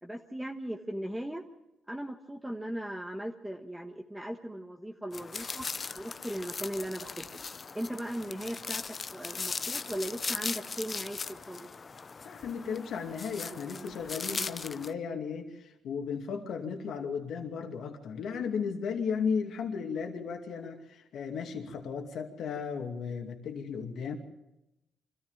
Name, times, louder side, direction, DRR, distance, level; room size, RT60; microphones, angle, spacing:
voice 1, 0.0-1.4 1.9-5.7 6.0-7.4 7.7-11.7, right 1 dB, 5° right, 2 dB, 1.4 m, -38 dB
sound 1, 5.1-14.9, left 4 dB, 35° left, 0.7 m, -39 dB
voice 2, 12.2-24.2, left 6 dB, 70° left, 3 dB, 2.5 m, -35 dB
25.0 x 14.5 x 7.4 m, 0.91 s
cardioid pair, 90°, 0 cm